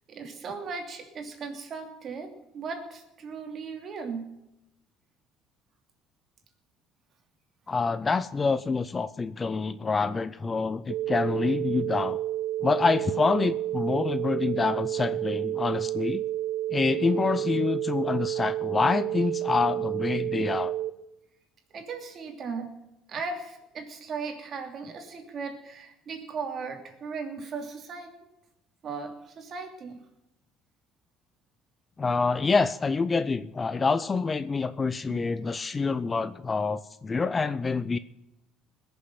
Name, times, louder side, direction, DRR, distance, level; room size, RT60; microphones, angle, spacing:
voice 1, 0.1-4.3 21.7-22.7 23.1-28.2 28.8-30.0, right 4 dB, 45° right, 3 dB, 2.8 m, -37 dB
voice 2, 7.7-12.2 12.6-16.2 16.7-20.7 32.0-38.0, left 4 dB, 25° left, 15 dB, 0.5 m, -27 dB
sound 1, 10.9-20.9, right 13 dB, 90° right, 1.0 m, -30 dB
20.0 x 7.1 x 5.8 m, 0.87 s
cardioid pair, 115°, 0 cm